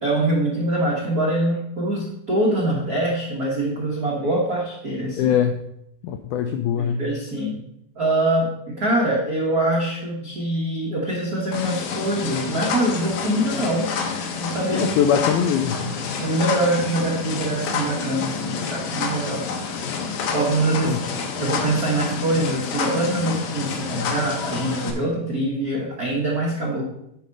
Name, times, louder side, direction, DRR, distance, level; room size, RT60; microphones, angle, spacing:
voice 1, 0.0-5.3 6.8-7.6 8.0-13.9 14.3-14.9 16.2-19.5 20.3-21.0 21.4-26.8, right 1 dB, 75° right, -3 dB, 0.8 m, -24 dB
voice 2, 5.2-5.7 6.0-7.0 14.7-15.9 20.8-21.0, left 8 dB, 85° left, 7 dB, 1.7 m, -22 dB
sound 1, 11.5-24.9, left 5 dB, 70° left, 2.4 m, -28 dB
10.0 x 4.9 x 5.3 m, 0.81 s
omnidirectional pair, 4.1 m